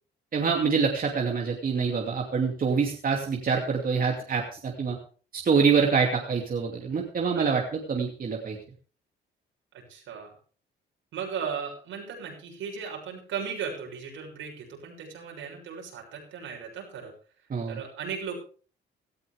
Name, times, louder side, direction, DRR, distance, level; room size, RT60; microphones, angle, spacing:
voice 1, 0.3-5.0 5.3-7.6 7.9-8.6 17.5-17.8, right 5 dB, 45° right, 0 dB, 2.8 m, -25 dB
voice 2, 9.9-10.3 11.1-17.1 17.7-18.4, right 6 dB, 80° right, 0 dB, 6.7 m, -36 dB
18.0 x 13.5 x 3.6 m, 0.40 s
cardioid pair, 90°, 20 cm